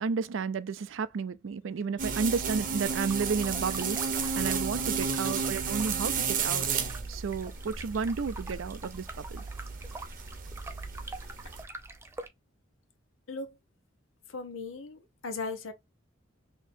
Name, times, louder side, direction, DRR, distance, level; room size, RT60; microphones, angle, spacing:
voice 1, 0.0-6.7 7.1-9.4, right 5 dB, 75° right, 0.4 m, -32 dB
sound 1, 2.0-11.6, right 5 dB, 45° right, 0.8 m, -33 dB
sound 2, 3.0-12.3, right 2 dB, 15° right, 0.4 m, -47 dB
voice 2, 14.3-15.7, left 3 dB, 90° left, 0.9 m, -38 dB
4.1 x 2.8 x 2.5 m
head